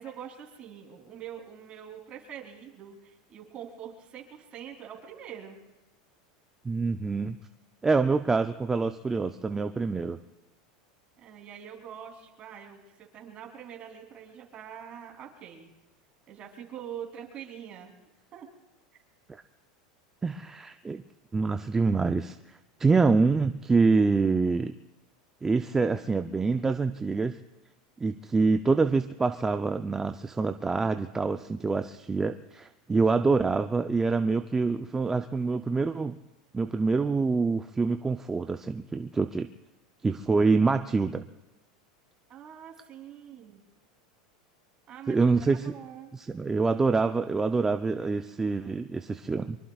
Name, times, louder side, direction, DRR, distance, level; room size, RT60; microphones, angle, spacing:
voice 1, 0.0-5.6 11.2-15.7 16.3-17.9 18.3-18.5 42.3-43.6 44.9-46.1, right 9 dB, 35° right, 1 dB, 3.3 m, -44 dB
voice 2, 6.6-7.4 7.8-10.2 20.2-21.0 21.3-24.7 25.4-27.4 28.0-36.2 36.5-39.5 40.0-41.2 45.1-45.7 46.1-49.6, right 4 dB, 15° right, 8 dB, 0.5 m, -26 dB
24.5 x 23.0 x 2.4 m, 0.99 s
supercardioid pair, 130°, 4 cm